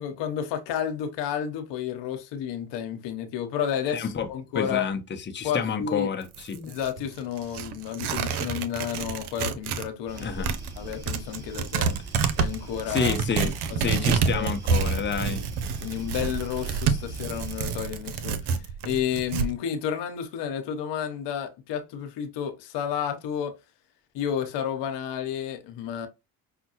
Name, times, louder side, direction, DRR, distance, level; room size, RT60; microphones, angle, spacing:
voice 1, 0.0-4.8 5.4-6.1 6.7-10.5 10.8-11.9 12.4-13.2 13.7-14.1 14.3-14.5 15.2-15.4 15.8-23.5 24.1-26.1, left 9 dB, 70° left, 0.9 m, -31 dB
voice 2, 3.9-4.3 4.5-6.7 10.2-10.5 12.9-13.5 13.8-15.4, left 6 dB, 25° left, 0.8 m, -29 dB
Tearing, 6.2-9.9 10.2-19.5, right 6 dB, 65° right, 0.7 m, -28 dB
sound 1, 10.1-17.8, right 3 dB, 35° right, 2.6 m, -40 dB
5.5 x 2.2 x 2.9 m
hypercardioid pair, 55°, 43 cm